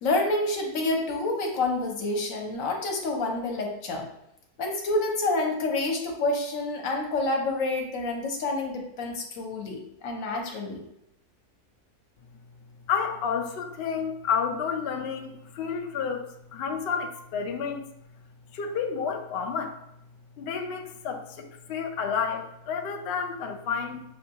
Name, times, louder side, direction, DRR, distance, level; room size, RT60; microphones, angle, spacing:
voice 1, 0.0-4.1 4.6-10.8, left 2 dB, 65° left, 1 dB, 1.1 m, -28 dB
voice 2, 12.9-16.2 16.5-17.8 18.5-19.8 20.4-24.0, left 6 dB, 85° left, 4 dB, 0.5 m, -30 dB
6.2 x 2.3 x 2.8 m, 0.79 s
omnidirectional pair, 1.6 m